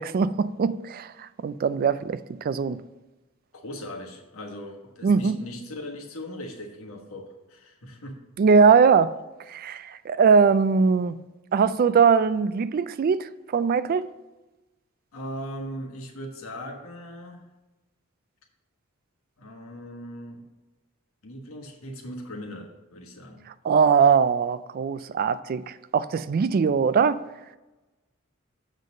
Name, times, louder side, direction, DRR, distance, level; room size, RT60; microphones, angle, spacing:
voice 1, 0.0-2.8 5.0-5.4 8.4-9.1 9.5-11.2 11.5-14.1 23.6-27.2, right 5 dB, 45° right, 0.3 m, -21 dB
voice 2, 3.5-8.2 15.1-17.4 19.4-20.4 21.2-23.4, equal, 85° left, 1.4 m, -39 dB
7.3 x 3.9 x 6.3 m
head